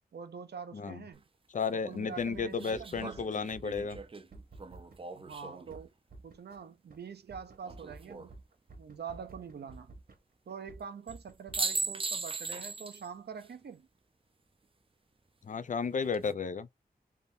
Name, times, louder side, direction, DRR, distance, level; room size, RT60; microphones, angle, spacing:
voice 1, 0.1-1.2 1.7-3.2 5.1-5.9 6.2-8.3 8.8-9.9 10.5-13.9, right 6 dB, 85° right, 0.6 m, -45 dB
sound 1, 1.1-1.2 2.6-5.8 7.6-8.3 11.1-11.2 11.5-13.1 13.4-13.5 15.8-16.3, right 4 dB, 35° right, 0.5 m, -38 dB
voice 2, 1.5-4.0 15.4-16.7, left 5 dB, 50° left, 0.4 m, -33 dB
sound 2, 2.2-5.0 5.3-5.4 5.7-6.6 6.9-7.0 7.3-10.2 10.5-11.6, right 2 dB, 65° right, 1.0 m, -51 dB
3.5 x 2.6 x 2.6 m
wide cardioid pair, 95°, 16 cm